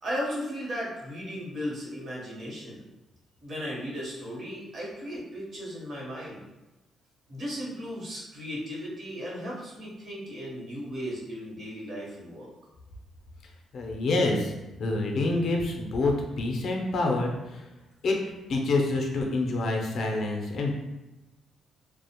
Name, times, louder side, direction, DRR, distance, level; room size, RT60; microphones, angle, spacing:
voice 1, 0.0-2.8 3.4-6.5 7.3-12.5, equal, 40° right, -5 dB, 0.8 m, -36 dB
voice 2, 13.7-14.5 14.8-17.7 18.0-18.2 18.5-20.8, left 2 dB, 55° left, 1 dB, 0.4 m, -27 dB
2.4 x 2.0 x 2.8 m, 1.0 s
cardioid pair, 150°, 0 cm